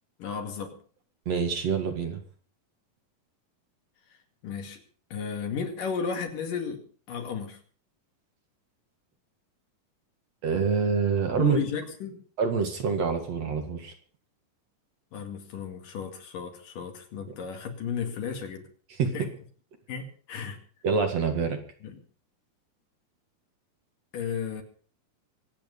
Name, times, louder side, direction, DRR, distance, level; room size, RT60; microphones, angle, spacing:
voice 1, 0.2-0.8 4.4-4.8 5.1-7.6 11.4-12.2 15.1-18.6 19.1-19.3 19.9-20.6 21.8-22.0 24.1-24.6, left 6 dB, 70° left, 4 dB, 3.9 m, -34 dB
voice 2, 1.3-2.2 10.4-11.6 12.4-13.9 18.9-19.1 20.8-21.6, right 6 dB, 55° right, 5 dB, 2.8 m, -26 dB
24.5 x 9.1 x 5.4 m, 0.44 s
omnidirectional pair, 4.0 m